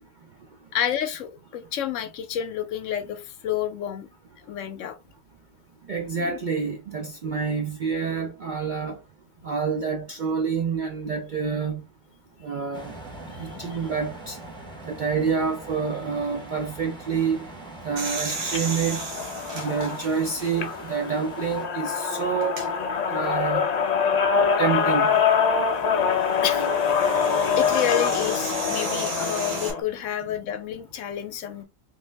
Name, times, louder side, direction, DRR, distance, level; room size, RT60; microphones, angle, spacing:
voice 1, 0.7-4.1 4.5-5.0 6.2-6.4 13.3-13.8 26.0-26.1 26.4-31.6, left 10 dB, 75° left, 0.9 m, -30 dB
voice 2, 5.9-9.0 9.4-11.8 12.4-12.9 13.4-14.4 14.9-17.5 17.8-19.0 19.5-22.7 23.1-23.7 24.6-25.2, right 5 dB, 55° right, 0.5 m, -27 dB
sound 1, 12.7-21.7, right 2 dB, 5° left, 0.7 m, -42 dB
sound 2, 18.0-20.9 21.4-21.5 22.4-22.7 24.8-29.7, right 3 dB, 80° right, 1.5 m, -35 dB
sound 3, 18.4-29.8, left 6 dB, 55° left, 0.4 m, -25 dB
3.5 x 2.7 x 3.3 m
omnidirectional pair, 1.4 m